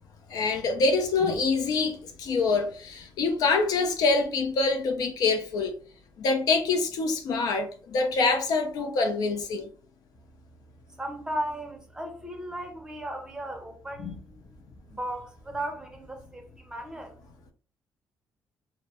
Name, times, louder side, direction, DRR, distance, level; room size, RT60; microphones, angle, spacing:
voice 1, 0.3-5.7 6.2-9.7 14.0-14.1, left 3 dB, 75° left, 0.5 m, -25 dB
voice 2, 11.0-14.4 14.9-17.2, right 1 dB, 10° right, 0.6 m, -36 dB
2.2 x 2.0 x 2.8 m
cardioid pair, 110°, 7 cm